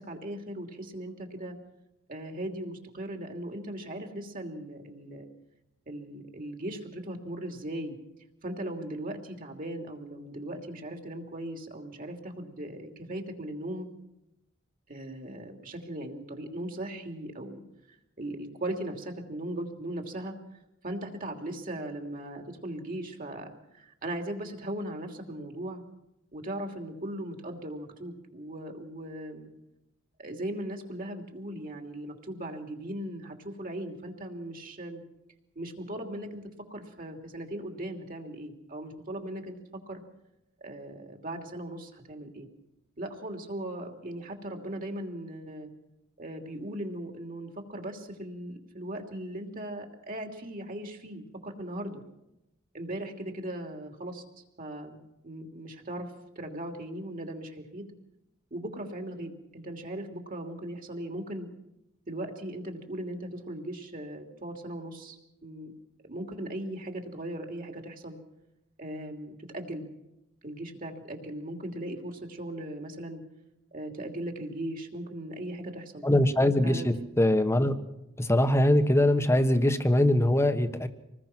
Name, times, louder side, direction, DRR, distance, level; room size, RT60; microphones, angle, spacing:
voice 1, 0.0-1.5 2.1-5.3 5.9-7.9 8.4-13.9 14.9-17.6 18.2-20.3 20.8-23.5 23.7-25.8 26.3-29.5 30.2-35.0 35.5-36.4 36.7-39.6 39.9-40.0 40.6-42.5 43.0-45.7 46.2-52.0 52.7-54.2 54.6-57.9 58.5-61.5 62.1-65.7 66.1-68.2 68.8-69.8 70.4-73.2 73.7-76.0 76.6-76.9, right 1 dB, 45° right, 3 dB, 3.0 m, -38 dB
voice 2, 76.0-77.7 78.2-80.9, left 1 dB, 15° left, 10 dB, 1.2 m, -22 dB
26.5 x 20.0 x 6.1 m, 0.89 s
head